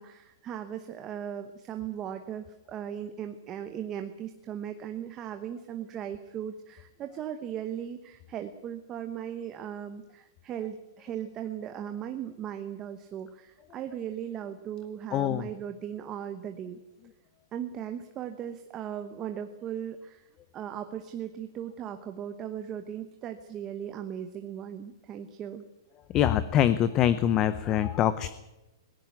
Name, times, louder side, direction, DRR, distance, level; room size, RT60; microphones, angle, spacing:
voice 1, 0.0-16.8 17.5-20.3 20.5-25.6, right 9 dB, 15° right, 7 dB, 1.0 m, -38 dB
voice 2, 15.1-15.5 26.1-28.3, left 10 dB, 20° left, 14 dB, 0.6 m, -24 dB
19.5 x 16.5 x 9.5 m, 0.96 s
hypercardioid pair, 175°, 2 cm